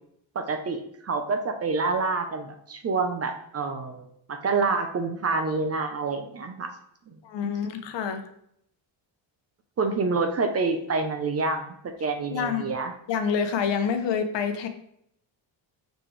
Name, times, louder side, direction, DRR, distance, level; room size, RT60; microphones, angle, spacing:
voice 1, 0.3-6.7 7.1-7.2 7.4-7.5 9.8-12.9, right 4 dB, 30° right, 5 dB, 0.7 m, -27 dB
voice 2, 7.2-8.2 12.3-12.7 13.1-14.7, left 7 dB, 60° left, 8 dB, 1.0 m, -27 dB
6.8 x 6.2 x 3.3 m, 0.71 s
cardioid pair, 160°, 48 cm